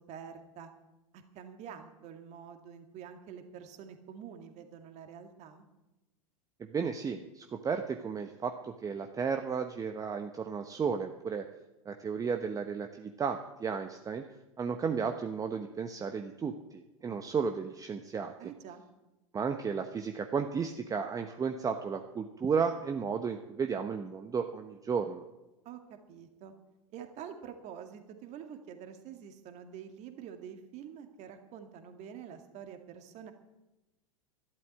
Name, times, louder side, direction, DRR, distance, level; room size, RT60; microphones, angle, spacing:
voice 1, 0.1-0.7 1.1-5.7 18.4-18.9 25.6-26.5 26.9-33.3, right 8 dB, 40° right, 6 dB, 2.2 m, -47 dB
voice 2, 6.6-11.5 11.8-14.2 14.6-18.3 19.3-25.2, right 6 dB, 20° right, 6 dB, 1.0 m, -33 dB
12.5 x 12.0 x 8.2 m, 1.0 s
figure-of-eight pair, 90°, 18 cm